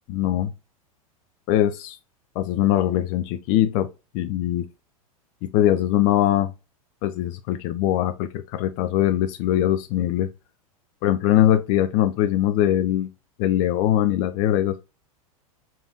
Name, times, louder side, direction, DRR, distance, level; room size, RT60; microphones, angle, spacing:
voice 1, 0.1-0.5 1.5-2.0 2.4-3.9 4.1-4.7 5.4-6.5 7.0-10.3 11.0-13.1 13.4-14.8, left 12 dB, 45° left, 0.4 m, -21 dB
3.5 x 2.7 x 2.4 m
hypercardioid pair, 95°, 19 cm